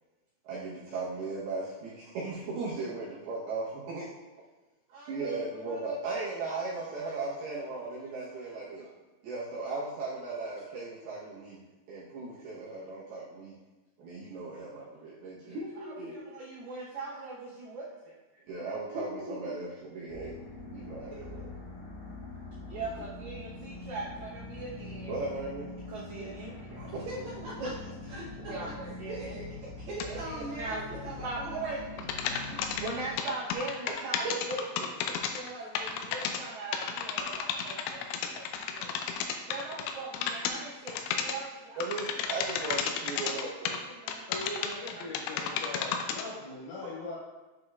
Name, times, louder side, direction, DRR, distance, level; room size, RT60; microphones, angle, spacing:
voice 1, 0.4-4.1 4.9-8.9 9.2-11.6 11.9-13.5 14.0-15.6 16.0-18.2 18.5-20.3 20.7-21.5 22.7-27.0 27.6-27.7 28.5-29.4 30.0-31.8 32.6-38.9 39.5-45.5, right 3 dB, 75° right, -8 dB, 2.3 m, -38 dB
voice 2, 15.4-16.2 18.9-19.5 27.0-27.7 28.1-29.5 29.9-32.6, right 1 dB, 60° right, -12 dB, 2.6 m, -41 dB
sound 1, 20.1-33.2, left 2 dB, 55° left, 3.2 m, -43 dB
sound 2, 30.0-30.1 32.0-35.5 35.7-36.4 36.7-40.6 40.9-41.4 41.8-43.8 44.1-46.2, left 7 dB, 90° left, 2.6 m, -33 dB
voice 3, 44.3-47.2, left 2 dB, 70° left, -7 dB, 4.6 m, -40 dB
8.4 x 5.0 x 2.4 m, 1.1 s
omnidirectional pair, 5.9 m